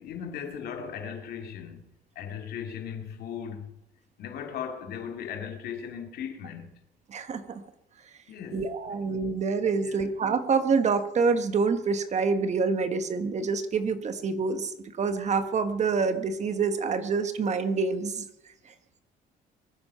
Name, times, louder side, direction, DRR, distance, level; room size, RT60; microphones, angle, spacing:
voice 1, 0.0-1.8 2.2-3.7 4.2-6.7 8.3-9.0 9.8-10.0, left 7 dB, 70° left, 2.5 m, -37 dB
voice 2, 7.1-7.6 8.5-18.2, right 4 dB, 45° right, 1.3 m, -27 dB
23.0 x 9.7 x 5.6 m
cardioid pair, 110°, 17 cm